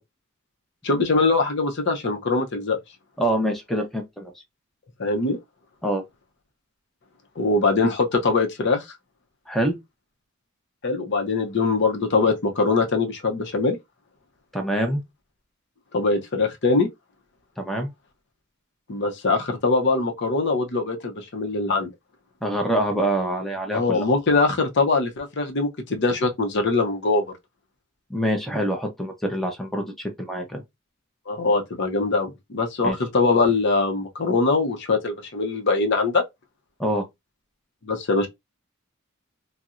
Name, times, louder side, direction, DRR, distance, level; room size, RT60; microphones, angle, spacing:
voice 1, 0.8-2.8 5.0-5.4 7.4-8.9 10.8-13.8 15.9-16.9 18.9-21.9 23.7-27.3 31.3-36.2 37.8-38.3, left 3 dB, 55° left, 0.6 m, -22 dB
voice 2, 3.2-4.3 5.8-6.0 9.5-9.7 14.5-15.0 17.6-17.9 22.4-24.0 28.1-30.6 32.8-33.0 36.8-37.0, right 1 dB, ahead, 0.6 m, -25 dB
4.0 x 2.0 x 2.4 m
head